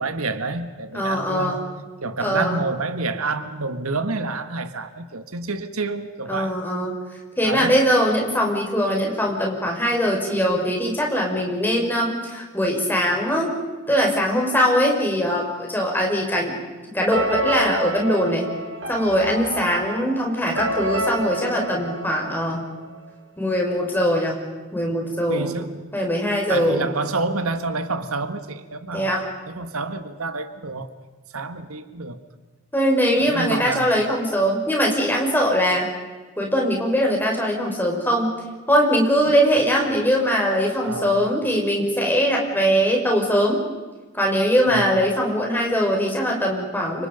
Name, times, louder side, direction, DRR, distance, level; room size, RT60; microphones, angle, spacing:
voice 1, 0.0-1.6 2.0-6.6 7.4-7.7 25.3-25.8 26.5-30.9 31.3-32.2 33.2-33.9 40.8-41.3 44.7-44.8, right 3 dB, 90° right, 9 dB, 1.7 m, -28 dB
voice 2, 0.9-1.6 2.2-2.6 6.3-7.0 7.4-13.5 13.9-16.6 16.9-18.5 18.9-22.6 23.4-24.4 24.7-25.5 25.9-26.9 28.9-29.3 32.7-35.9 36.4-38.3 38.7-43.6 44.1-47.1, equal, 10° left, 0 dB, 5.4 m, -21 dB
sound 1, 17.1-22.9, right 1 dB, 60° right, 5.4 m, -28 dB
30.0 x 26.5 x 5.3 m, 1.3 s
head